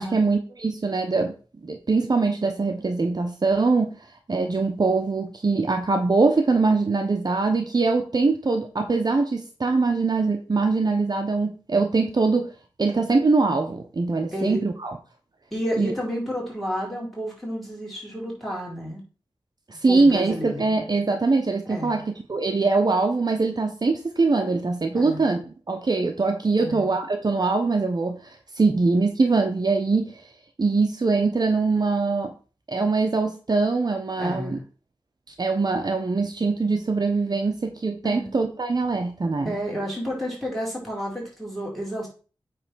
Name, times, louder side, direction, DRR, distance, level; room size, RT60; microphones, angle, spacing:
voice 1, 0.0-1.3 1.6-3.9 4.3-12.5 12.8-15.0 15.8-15.9 19.7-22.0 22.3-30.2 30.6-32.3 32.7-34.6 35.4-39.5, right 3 dB, 45° right, 5 dB, 0.8 m, -23 dB
voice 2, 15.5-19.0 19.9-20.6 21.7-22.0 24.9-25.3 26.6-26.8 34.2-34.6 38.0-38.3 39.4-42.1, equal, ahead, -3 dB, 4.2 m, -31 dB
8.7 x 3.3 x 6.1 m, 0.37 s
wide cardioid pair, 100°, 9 cm